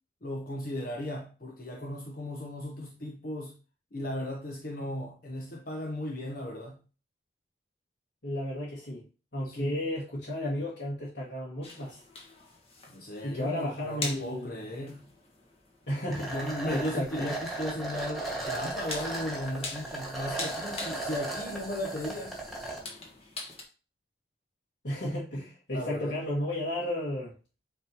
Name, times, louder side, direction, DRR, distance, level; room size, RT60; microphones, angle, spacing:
voice 1, 0.2-3.5 3.9-6.8 9.4-9.8 12.9-15.0 16.0-22.4 25.7-26.2, left 1 dB, 55° left, 0.9 m, -36 dB
voice 2, 8.2-9.0 9.3-12.0 13.2-14.7 15.9-16.4 16.7-17.1 24.8-27.3, left 1 dB, 75° left, 2.1 m, -33 dB
sound 1, 11.6-23.6, left 3 dB, 35° left, 1.5 m, -44 dB
sound 2, 16.1-22.8, right 2 dB, ahead, 1.8 m, -36 dB
8.7 x 3.6 x 3.0 m
head